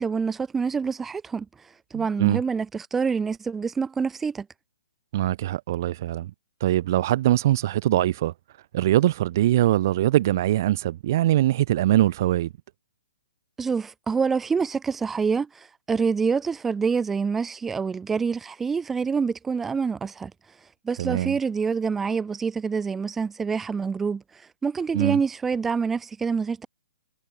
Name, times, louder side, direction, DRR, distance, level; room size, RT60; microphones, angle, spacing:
voice 1, 0.0-1.5 1.9-4.5 13.6-20.3 20.8-24.2 24.6-26.7, right 5 dB, 10° right, 2.8 m, -26 dB
voice 2, 1.9-2.4 5.1-6.3 6.6-8.3 8.7-12.5 21.0-21.4 24.9-25.2, right 14 dB, 45° right, 2.0 m, -22 dB
hypercardioid pair, 160°, 3 cm